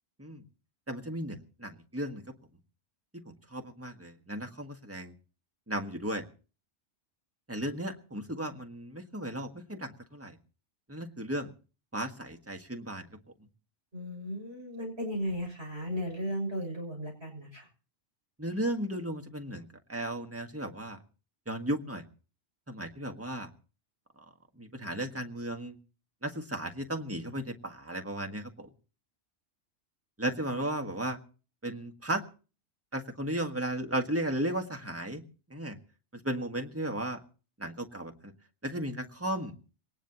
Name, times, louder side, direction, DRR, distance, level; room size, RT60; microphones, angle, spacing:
voice 1, 0.9-2.2 3.1-5.1 5.7-6.2 7.5-10.4 10.9-11.5 11.9-13.0 18.4-21.0 21.5-22.0 22.7-23.5 24.2-24.3 24.6-25.8 26.2-28.7 30.2-31.2 31.6-32.2 32.9-35.2 35.5-35.8 36.1-37.2 37.6-38.3 38.6-39.5, right 1 dB, 10° right, 5 dB, 1.5 m, -35 dB
voice 2, 13.9-17.7, equal, 60° right, 1 dB, 6.9 m, -35 dB
23.0 x 19.0 x 2.9 m, 0.37 s
omnidirectional pair, 1.2 m